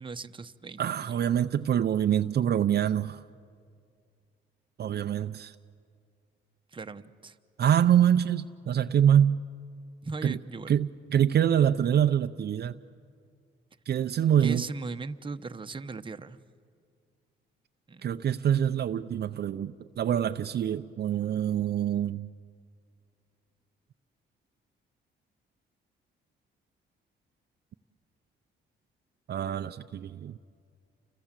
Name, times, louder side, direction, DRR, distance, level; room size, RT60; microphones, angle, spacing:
voice 1, 0.0-1.2 6.7-7.4 10.0-10.7 14.4-16.4 17.9-18.1, right 4 dB, 25° right, 1.0 m, -38 dB
voice 2, 0.8-3.2 4.8-5.5 7.6-9.4 10.2-10.4 10.7-12.8 13.9-14.7 18.0-22.3 29.3-30.4, right 9 dB, 55° right, 0.6 m, -25 dB
30.0 x 25.5 x 7.5 m
cardioid pair, 90°, 20 cm